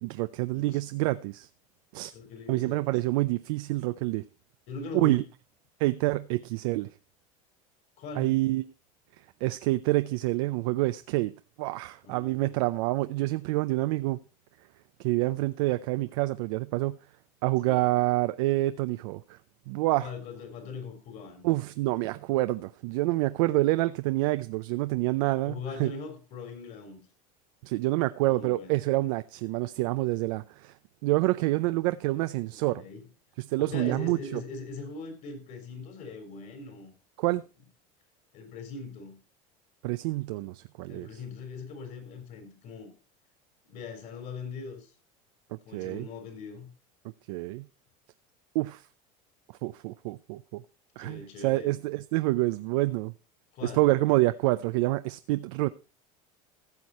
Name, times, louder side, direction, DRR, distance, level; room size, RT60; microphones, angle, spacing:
voice 1, 0.0-1.5 1.9-2.1 2.5-4.2 4.9-5.2 5.8-6.9 8.2-8.6 9.4-11.3 11.6-14.2 15.0-17.0 17.4-19.4 19.7-20.1 21.4-25.9 27.6-30.7 31.0-32.8 33.4-34.4 37.2-37.4 39.8-41.1 45.7-46.1 47.3-47.7 48.5-48.8 49.6-50.6 51.0-53.1 53.6-55.7, right 19 dB, 80° right, 0.5 m, -27 dB
voice 2, 0.5-0.9 2.1-3.1 4.7-5.2 8.0-8.3 12.0-12.5 17.6-17.9 20.0-21.5 25.4-27.0 28.2-28.8 32.7-33.0 33.6-36.9 38.3-39.2 40.9-42.9 43.7-44.9 45.6-46.7 51.0-51.8 53.5-53.9, left 4 dB, 55° left, 4.1 m, -41 dB
15.0 x 6.5 x 4.2 m
supercardioid pair, 130°, 18 cm